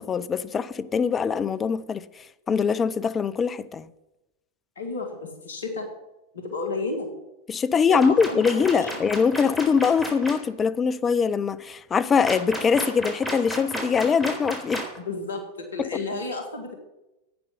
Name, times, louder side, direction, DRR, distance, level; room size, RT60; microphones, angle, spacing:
voice 1, 0.0-2.1 2.5-3.9 7.5-14.9 15.8-15.9, left 6 dB, 20° left, 0.5 m, -23 dB
voice 2, 4.8-5.9 6.3-7.1 7.9-8.9 15.0-16.8, left 3 dB, 65° left, 2.2 m, -32 dB
sound 1, 8.0-10.3 12.2-15.0, equal, 5° left, 4.0 m, -32 dB
11.0 x 9.2 x 5.6 m
figure-of-eight pair, 90°, 0 cm